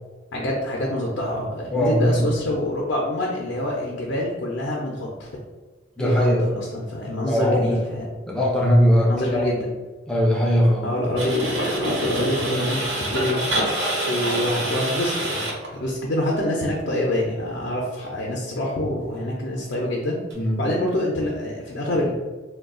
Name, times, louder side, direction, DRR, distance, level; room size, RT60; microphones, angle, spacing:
voice 1, 0.3-5.3 6.0-8.1 9.0-9.7 10.8-13.6 14.1-15.4 15.7-20.2 20.6-22.1, left 1 dB, 70° left, -2 dB, 0.5 m, -26 dB
voice 2, 1.7-2.3 6.0-6.4 7.3-7.8 8.3-9.7 10.1-10.9 20.4-20.6, equal, 5° left, -4 dB, 0.4 m, -20 dB
sound 1, 11.2-15.7 20.3-20.4, right 1 dB, 70° right, 0.9 m, -26 dB
2.3 x 2.2 x 3.6 m, 1.3 s
head